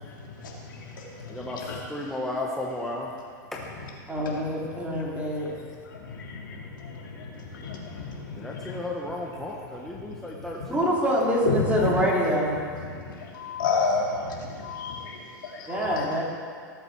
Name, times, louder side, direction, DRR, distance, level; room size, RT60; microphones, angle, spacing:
voice 1, 0.0-2.4 3.6-9.6 9.9-10.7 11.4-16.1, left 4 dB, 85° left, -2 dB, 2.8 m, -33 dB
voice 2, 1.3-3.1 3.5-3.6 8.3-11.0, left 1 dB, 5° left, -3 dB, 1.2 m, -34 dB
voice 3, 4.1-5.5 10.7-12.6 15.7-16.2, equal, 10° right, -4 dB, 3.1 m, -25 dB
18.0 x 7.9 x 4.6 m, 2.2 s
hypercardioid pair, 125°, 11 cm